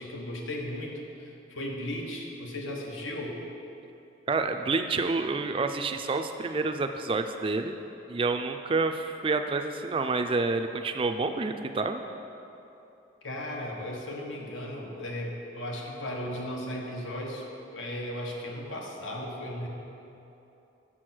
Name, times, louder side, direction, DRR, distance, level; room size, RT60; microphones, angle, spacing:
voice 1, 0.0-3.4 13.2-17.5 17.7-19.7, left 1 dB, 90° left, -1 dB, 1.3 m, -36 dB
voice 2, 4.3-7.8 8.1-12.0, right 3 dB, 30° right, 7 dB, 0.3 m, -28 dB
7.3 x 6.3 x 6.0 m, 2.9 s
head